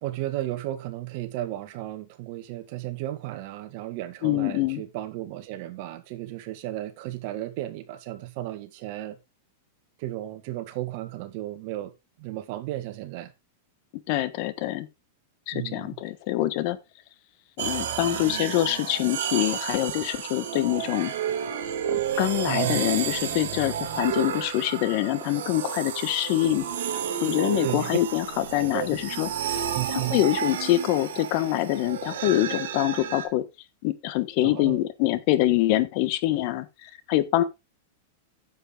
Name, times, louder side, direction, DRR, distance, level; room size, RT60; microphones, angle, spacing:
voice 1, 0.0-9.2 10.0-11.9 12.2-13.3 15.5-16.0 22.4-22.9 27.6-27.9 28.6-28.9 29.7-30.2 34.4-34.8, right 15 dB, 50° right, 1.6 m, -34 dB
voice 2, 4.2-4.8 14.1-14.9 15.5-16.8 17.6-21.1 21.9-26.7 27.2-29.3 29.9-33.4 33.8-37.4, left 15 dB, 50° left, 1.2 m, -25 dB
sound 1, 17.6-33.3, right 9 dB, 80° right, 2.4 m, -31 dB
9.6 x 7.7 x 3.7 m
supercardioid pair, 140°, 0 cm